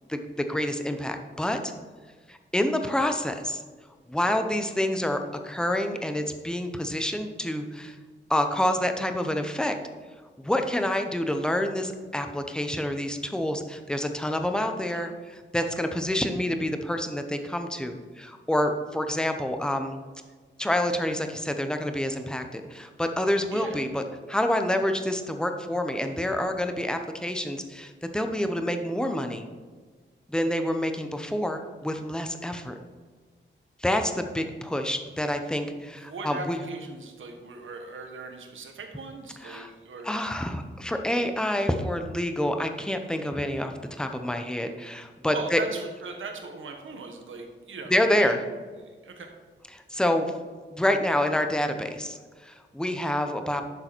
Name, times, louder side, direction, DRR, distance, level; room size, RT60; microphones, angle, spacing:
voice 1, 0.1-1.7 2.3-3.6 4.1-8.0 8.3-9.8 10.4-20.0 20.6-24.0 24.3-29.4 30.3-32.8 33.8-36.6 39.4-39.7 40.0-45.6 47.9-48.4 49.7-50.3 50.7-53.6, left 1 dB, 5° left, 6 dB, 0.7 m, -28 dB
voice 2, 35.8-40.1 45.3-48.3 48.8-49.3, right 3 dB, 90° right, 4 dB, 1.5 m, -39 dB
11.0 x 6.7 x 4.5 m, 1.5 s
wide cardioid pair, 175°, 20 cm